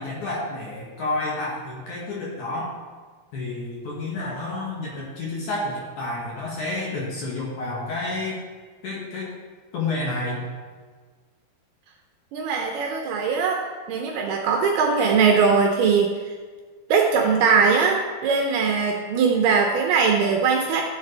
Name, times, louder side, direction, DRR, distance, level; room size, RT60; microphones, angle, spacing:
voice 1, 0.0-2.7 3.3-8.4 8.8-9.3 9.7-10.4, left 2 dB, 55° left, -5 dB, 2.6 m, -30 dB
voice 2, 12.3-13.6 13.9-16.2 16.9-20.8, right 5 dB, 75° right, 2 dB, 2.4 m, -20 dB
15.0 x 7.5 x 3.3 m, 1.5 s
omnidirectional pair, 5.1 m